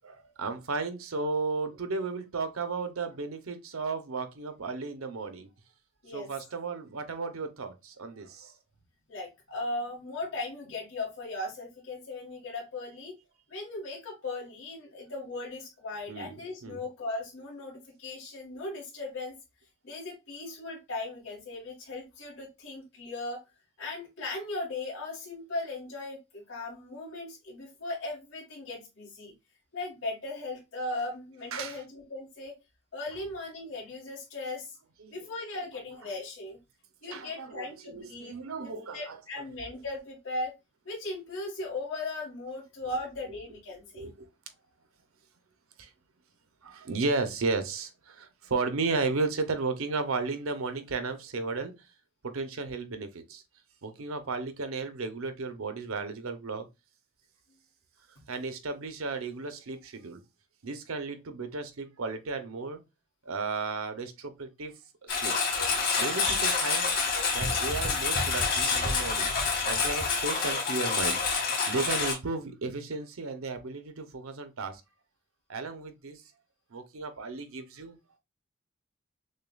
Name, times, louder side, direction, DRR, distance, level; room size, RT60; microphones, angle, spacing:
voice 1, 0.0-5.5 6.1-8.5 16.1-16.3 16.6-16.8 31.5-31.8 35.0-35.3 37.1-39.4 43.9-44.3 45.8-45.9 46.6-51.9 52.2-53.4 53.8-56.7 58.3-60.2 60.6-62.8 63.2-65.3 65.7-66.9 67.3-69.3 69.6-74.8 75.5-76.2 76.7-78.0, right 3 dB, 75° right, 0.7 m, -34 dB
voice 2, 9.1-13.1 13.5-19.3 19.8-23.4 23.8-29.3 29.7-32.5 32.9-34.8 35.1-36.6 37.0-40.5 40.9-44.1, left 2 dB, 80° left, 1.9 m, -38 dB
Engine, 65.1-72.1, left 4 dB, 45° left, 1.6 m, -27 dB
6.4 x 2.3 x 2.3 m
head